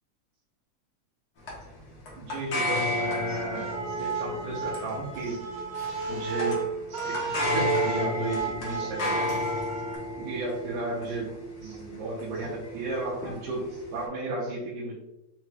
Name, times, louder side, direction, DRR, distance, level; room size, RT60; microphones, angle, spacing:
sound 1, 1.5-14.1, left 1 dB, 75° left, 0.8 m, -33 dB
voice 1, 2.2-5.5 6.1-9.5 10.2-11.3 11.6-14.9, right 3 dB, 90° right, -5 dB, 2.2 m, -34 dB
sound 2, 3.3-10.0, right 4 dB, 70° right, 1.0 m, -33 dB
sound 3, 5.2-6.9 8.2-10.3, left 1 dB, 60° left, 2.0 m, -51 dB
5.6 x 2.2 x 3.2 m, 0.90 s
omnidirectional pair, 3.3 m